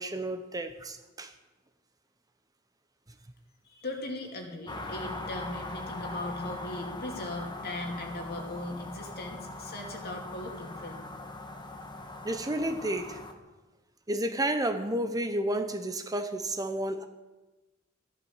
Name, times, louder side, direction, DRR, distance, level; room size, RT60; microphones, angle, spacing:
voice 1, 0.0-1.3 12.2-13.2 14.1-17.0, right 1 dB, 20° right, 8 dB, 0.8 m, -31 dB
voice 2, 3.7-11.0, left 2 dB, 50° left, 2 dB, 2.6 m, -38 dB
sound 1, 4.7-13.3, left 2 dB, 20° left, 1.5 m, -41 dB
14.0 x 11.5 x 7.2 m, 1.1 s
head